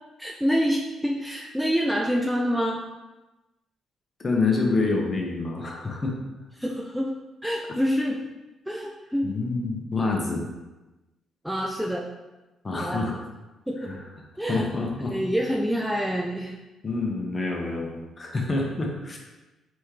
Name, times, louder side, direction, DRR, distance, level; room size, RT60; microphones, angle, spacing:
voice 1, 0.2-2.8 6.6-7.1 7.4-8.2 8.7-9.3 11.4-12.0 12.7-13.2 13.7-13.9 14.4-14.7 15.1-16.6, equal, 5° right, 0 dB, 0.4 m, -26 dB
voice 2, 4.2-6.2 9.2-10.4 12.6-13.2 13.8-14.0 14.5-15.1 16.8-19.2, left 3 dB, 30° left, 0 dB, 0.9 m, -27 dB
4.1 x 3.6 x 3.3 m, 1.1 s
cardioid pair, 90°, 0 cm